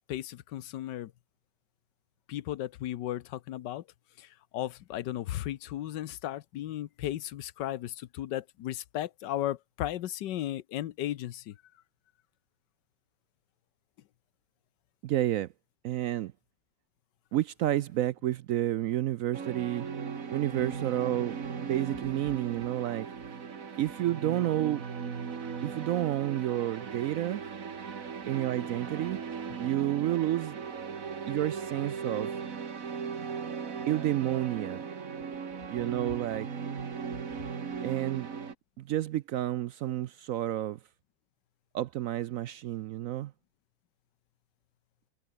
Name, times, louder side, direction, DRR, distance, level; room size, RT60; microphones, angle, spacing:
voice 1, 0.1-1.1 2.3-3.8 4.2-11.6, left 13 dB, 85° left, 1.5 m, -35 dB
voice 2, 15.0-15.5 15.8-16.3 17.3-19.9 20.3-23.1 23.8-24.8 25.6-27.4 28.3-29.2 29.6-30.6 31.3-32.3 33.9-34.8 35.7-36.5 37.8-38.3 38.8-40.8 41.7-43.3, right 13 dB, 70° right, 0.8 m, -30 dB
sound 1, 19.3-38.5, right 6 dB, 50° right, 2.0 m, -38 dB
omnidirectional pair, 1.8 m